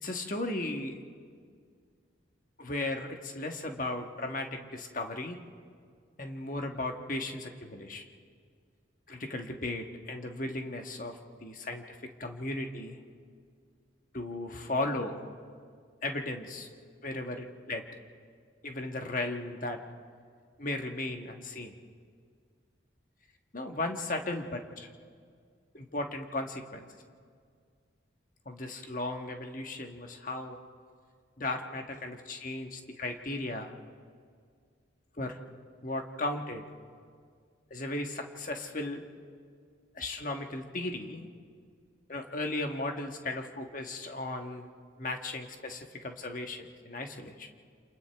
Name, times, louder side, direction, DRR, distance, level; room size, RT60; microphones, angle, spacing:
voice 1, 0.0-1.0 2.6-5.4 6.2-8.0 9.1-13.0 14.1-15.3 16.0-16.7 17.0-17.9 18.6-19.8 20.6-21.7 23.5-24.9 25.7-26.9 28.4-30.6 31.4-33.7 35.2-35.4 35.8-36.6 37.7-39.0 39.9-41.3 42.1-44.7 45.0-47.5, left 2 dB, 45° left, 4 dB, 1.4 m, -36 dB
28.5 x 28.0 x 3.4 m, 2.1 s
head